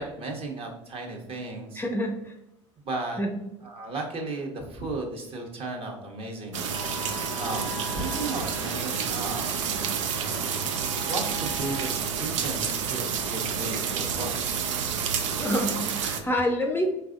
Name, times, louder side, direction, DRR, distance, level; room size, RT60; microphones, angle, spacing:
voice 1, 0.0-1.8 2.8-3.2 3.6-10.6 11.1-14.4, right 2 dB, 35° right, 1 dB, 1.1 m, -35 dB
voice 2, 1.8-2.3 3.2-3.4 15.4-16.9, equal, 15° left, 3 dB, 0.5 m, -27 dB
sound 1, 6.5-16.2, right 7 dB, 75° right, 0.5 m, -29 dB
sound 2, 6.7-11.9, left 5 dB, 85° left, 0.7 m, -42 dB
4.6 x 3.4 x 2.5 m, 0.88 s
figure-of-eight pair, 65°, 16 cm